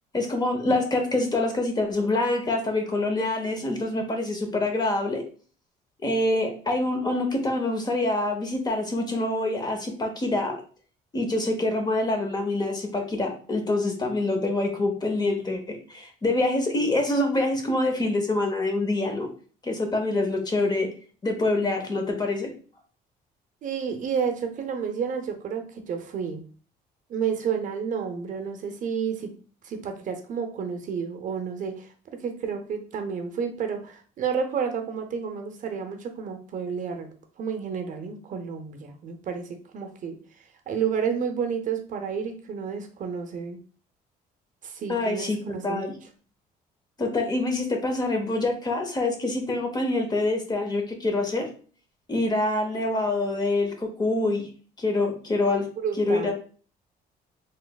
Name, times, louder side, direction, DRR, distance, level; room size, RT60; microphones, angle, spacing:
voice 1, 0.1-5.2 6.0-10.6 11.1-19.3 19.6-20.9 21.2-22.5 44.9-45.4 45.6-45.9 47.0-51.4 52.1-54.5 54.8-55.7 56.0-56.3, left 2 dB, 25° left, 4 dB, 0.7 m, -25 dB
voice 2, 23.6-26.4 27.1-29.3 29.6-31.9 32.2-37.1 37.4-40.2 40.7-43.6 44.6-45.9 55.8-56.3, right 6 dB, 50° right, 5 dB, 0.6 m, -30 dB
3.1 x 3.1 x 2.2 m, 0.40 s
cardioid pair, 110°, 17 cm